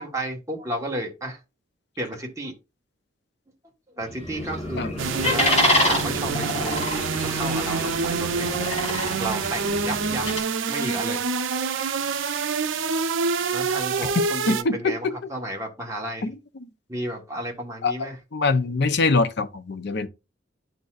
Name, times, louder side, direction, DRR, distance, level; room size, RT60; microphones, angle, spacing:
voice 1, 0.0-1.4 2.0-2.5 3.9-6.9 7.2-8.5 9.2-10.3 10.7-11.2 13.5-16.3 16.9-18.2, right 1 dB, 15° right, 1.3 m, -32 dB
sound 1, 4.1-10.4, left 1 dB, 35° left, 2.7 m, -27 dB
sound 2, 5.0-14.6, right 5 dB, 85° right, 0.5 m, -26 dB
voice 2, 14.5-15.1 16.2-16.3 17.8-20.1, left 3 dB, 60° left, 0.6 m, -24 dB
11.0 x 4.0 x 2.4 m
head